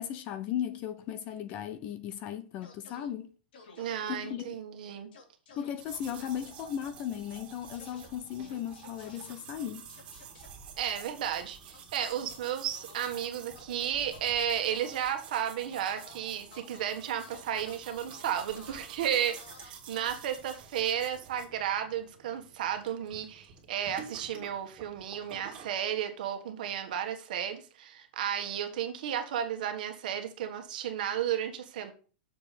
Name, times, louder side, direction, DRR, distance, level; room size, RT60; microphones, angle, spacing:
voice 1, 0.0-3.3 4.1-4.6 5.5-9.9, left 10 dB, 25° left, 0.4 m, -36 dB
sound 1, 2.6-3.1 3.5-4.3 5.1-5.7 6.0-6.3 7.7-8.1 8.4-9.3 9.9-10.5 11.3-13.0 13.6-14.2 14.7-15.0 15.4-16.2 16.5-16.9 17.2-20.1, left 4 dB, 65° left, 2.5 m, -53 dB
voice 2, 3.8-5.1 8.4-8.6 10.8-31.9, right 9 dB, 50° right, 1.5 m, -33 dB
sound 2, 5.8-25.7, right 7 dB, 20° right, 1.9 m, -50 dB
6.9 x 4.7 x 6.7 m
supercardioid pair, 180°, 6 cm